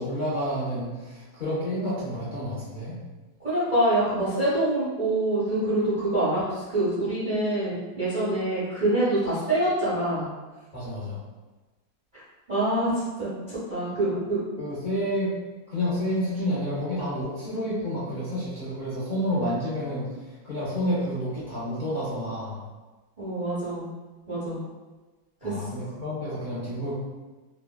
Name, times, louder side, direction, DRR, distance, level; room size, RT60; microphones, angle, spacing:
voice 1, 0.0-3.0 10.7-11.2 14.6-15.3 15.7-20.1 20.4-22.6 25.4-26.9, equal, 70° left, -11 dB, 0.4 m, -29 dB
voice 2, 3.4-10.3 12.5-14.4 23.2-23.9 24.3-24.6 25.4-25.5, right 1 dB, 45° right, -11 dB, 0.6 m, -25 dB
3.2 x 2.2 x 2.3 m, 1.2 s
omnidirectional pair, 2.1 m